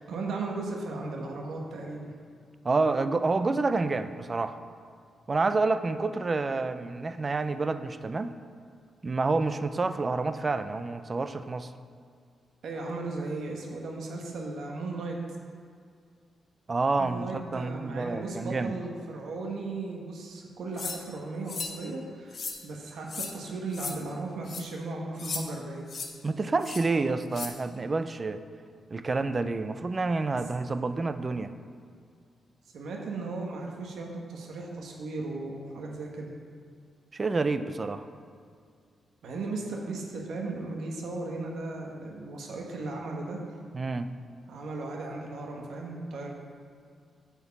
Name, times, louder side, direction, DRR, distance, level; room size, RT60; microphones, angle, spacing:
voice 1, 0.0-2.1 12.6-15.2 17.0-25.9 32.7-36.3 39.2-43.4 44.5-46.3, right 3 dB, 80° right, 0 dB, 1.1 m, -36 dB
voice 2, 2.6-4.6 5.3-8.3 9.0-11.7 16.7-18.8 26.2-28.4 28.9-31.5 37.1-38.1 43.7-44.1, right 3 dB, 30° right, 11 dB, 0.4 m, -28 dB
sound 1, 20.8-21.0 21.5-21.7 22.3-22.6 23.1-23.3 23.7-23.9 24.4-24.6 25.2-25.4 25.9-26.1 26.6-26.8 27.3-27.5, left 5 dB, 50° left, 0.9 m, -35 dB
8.4 x 4.5 x 6.9 m, 2.2 s
wide cardioid pair, 130°, 0 cm